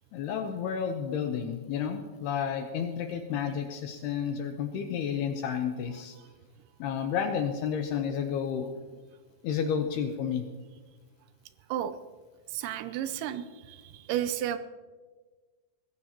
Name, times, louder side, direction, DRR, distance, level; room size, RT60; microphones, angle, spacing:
voice 1, 0.1-6.2 6.8-8.7 9.4-10.4, left 7 dB, 75° left, 5 dB, 2.5 m, -31 dB
voice 2, 12.5-14.6, right 11 dB, 80° right, 11 dB, 2.9 m, -32 dB
21.0 x 15.0 x 2.9 m, 1.3 s
omnidirectional pair, 5.4 m